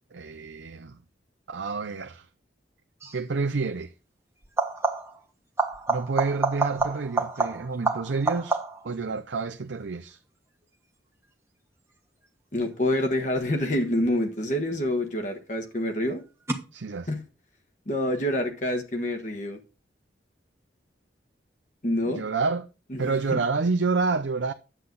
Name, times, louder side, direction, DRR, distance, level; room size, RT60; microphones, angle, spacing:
voice 1, 0.1-1.0 1.5-2.3 3.1-3.9 5.9-10.2 16.7-17.1 22.0-22.7 23.0-24.5, right 4 dB, 80° right, 0.6 m, -28 dB
sound 1, 3.0-3.3 4.4-5.2 5.6-8.9 14.4-15.0 16.5-16.6, right 3 dB, 15° right, 1.3 m, -28 dB
voice 2, 12.5-16.2 17.1-17.2 17.9-19.6 21.8-22.2 22.9-23.4, left 1 dB, 40° left, 1.4 m, -27 dB
9.9 x 7.7 x 3.9 m
head